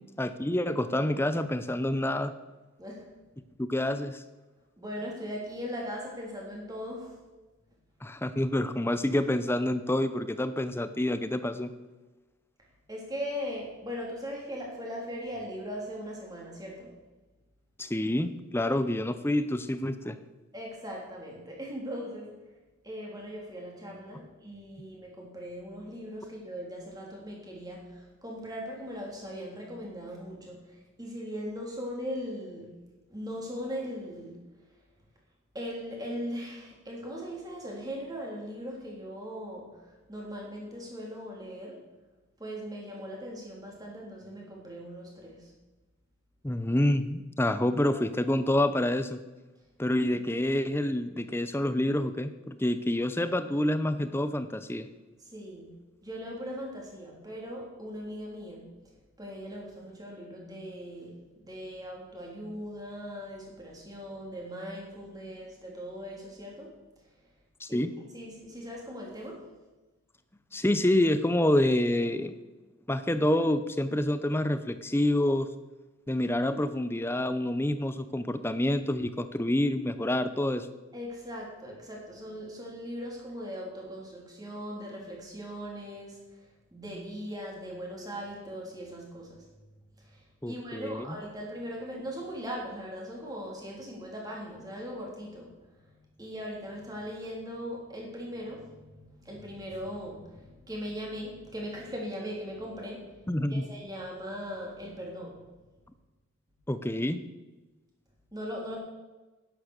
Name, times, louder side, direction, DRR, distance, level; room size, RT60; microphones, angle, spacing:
voice 1, 0.2-2.3 3.6-4.2 8.0-11.7 17.8-20.2 46.4-49.2 49.8-54.9 67.6-67.9 70.5-72.4 72.9-75.5 76.1-80.7 90.4-91.1 103.3-103.6 106.7-107.2, left 1 dB, 10° left, 11 dB, 0.7 m, -27 dB
voice 2, 2.8-3.1 4.8-7.1 12.9-17.0 20.5-22.3 22.8-32.7 33.1-34.4 35.5-41.8 42.4-45.5 55.2-55.7 56.0-58.7 59.2-66.7 67.7-67.8 68.1-69.4 80.9-86.2 86.7-89.4 90.0-103.1 103.5-105.4 108.3-108.8, equal, 20° right, -2 dB, 3.4 m, -39 dB
11.0 x 10.5 x 6.6 m, 1.2 s
head